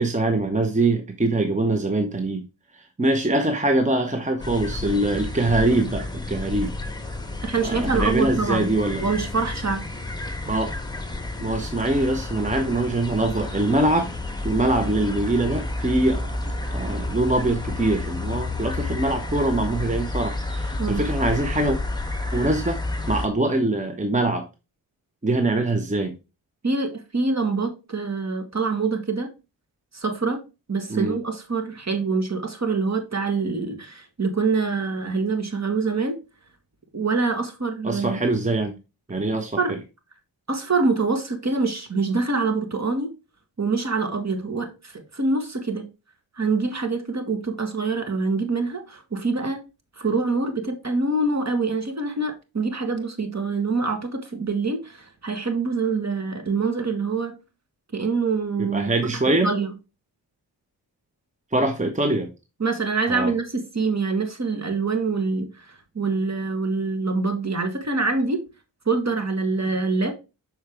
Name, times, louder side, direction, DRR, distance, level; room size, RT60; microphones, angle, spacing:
voice 1, 0.0-2.4 3.0-6.7 7.6-9.1 10.5-10.7 11.4-14.1 14.4-16.3 16.7-21.8 22.3-22.8 23.1-24.5 25.2-26.1 30.9-31.2 37.8-38.7 39.1-39.8 58.6-59.5 61.5-62.3 63.1-63.3, right 2 dB, 15° right, 0.8 m, -23 dB
sound 1, 4.4-23.3, left 2 dB, 10° left, 1.2 m, -30 dB
voice 2, 7.4-8.7 9.0-9.8 20.8-21.0 26.6-29.3 29.9-30.4 30.7-36.2 36.9-38.2 39.6-39.7 40.5-43.1 43.6-45.8 46.4-49.6 50.0-57.3 57.9-58.9 59.3-59.7 62.6-65.7 65.9-68.4 68.8-70.1, right 4 dB, 35° right, 1.6 m, -25 dB
6.4 x 4.6 x 3.4 m
cardioid pair, 50°, 44 cm